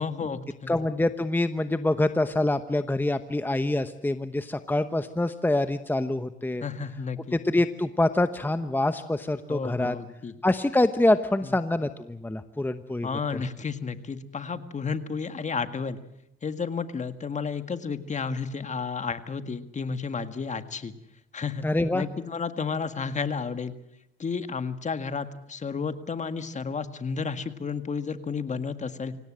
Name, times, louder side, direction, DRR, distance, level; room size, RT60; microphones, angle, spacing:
voice 1, 0.0-0.8 6.6-7.3 9.5-10.3 11.4-11.5 13.0-16.0 16.4-20.9 21.3-21.7 21.9-23.7 24.2-29.1, left 5 dB, 35° left, 10 dB, 1.8 m, -32 dB
voice 2, 0.7-6.6 7.4-9.9 10.4-13.1 21.6-22.0, left 2 dB, 10° left, 10 dB, 1.1 m, -25 dB
25.5 x 17.5 x 7.6 m, 0.83 s
cardioid pair, 90°, 20 cm